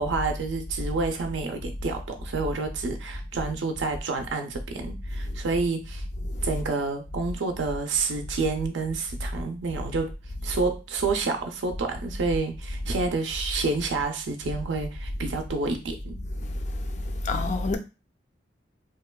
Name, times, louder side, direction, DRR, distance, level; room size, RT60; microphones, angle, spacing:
voice 1, 0.0-6.0 6.4-10.1 10.4-16.2, right 3 dB, 80° right, 0.5 m, -29 dB
voice 2, 17.2-17.8, left 2 dB, 40° left, 0.4 m, -27 dB
2.8 x 2.2 x 2.2 m
head